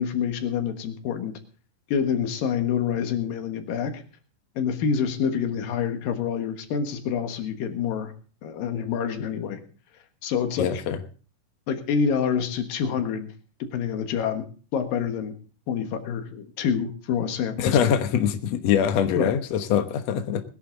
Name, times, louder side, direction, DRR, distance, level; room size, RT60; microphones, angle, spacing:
voice 1, 0.0-1.4 1.9-4.0 4.6-8.1 8.4-9.6 10.2-10.8 11.7-13.3 13.6-14.4 14.7-15.3 15.7-17.9 19.2-19.3, left 7 dB, 85° left, 7 dB, 3.3 m, -27 dB
voice 2, 10.6-11.0 17.6-20.4, left 8 dB, 60° left, 7 dB, 2.1 m, -23 dB
20.5 x 11.0 x 3.9 m, 0.39 s
omnidirectional pair, 3.9 m